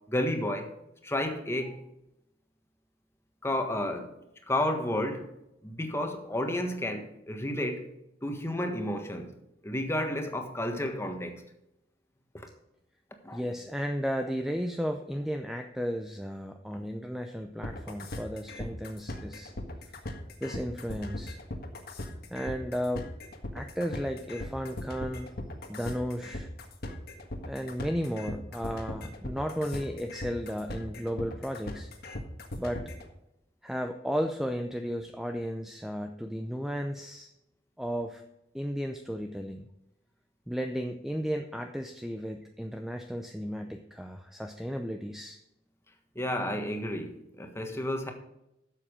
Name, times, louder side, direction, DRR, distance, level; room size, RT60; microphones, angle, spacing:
voice 1, 0.1-0.7 1.0-1.8 3.4-4.1 4.5-5.3 5.6-7.9 8.2-9.3 9.6-11.4 13.2-13.4 46.1-48.1, left 1 dB, 15° left, 5 dB, 1.5 m, -31 dB
voice 2, 13.3-19.5 20.4-21.4 22.3-23.1 23.5-25.3 25.7-26.5 27.5-31.9 32.6-32.8 33.6-37.3 37.8-38.2 38.5-39.7 40.5-45.4, equal, ahead, 5 dB, 0.6 m, -34 dB
sound 1, 17.6-33.1, left 1 dB, 55° left, 1.6 m, -38 dB
12.0 x 7.5 x 5.0 m, 0.85 s
head